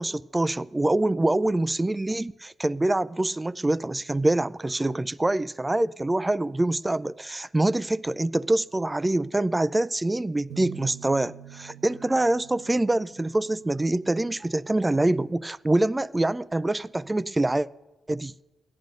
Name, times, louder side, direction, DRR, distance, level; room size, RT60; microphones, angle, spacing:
voice 1, 0.0-17.7 18.1-18.3, right 2 dB, 15° right, 0.3 m, -25 dB
sound 1, 10.5-14.2, right 11 dB, 80° right, 1.0 m, -46 dB
17.0 x 10.5 x 5.3 m
cardioid pair, 70°, 0 cm